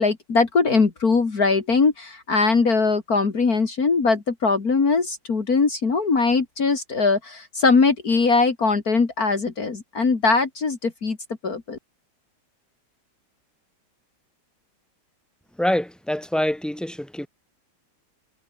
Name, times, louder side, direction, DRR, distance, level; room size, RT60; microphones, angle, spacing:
voice 1, 0.0-11.2 11.4-11.8, left 4 dB, 55° left, 2.9 m, -21 dB
voice 2, 15.5-17.3, left 1 dB, ahead, 5.0 m, -25 dB
omnidirectional pair, 1.9 m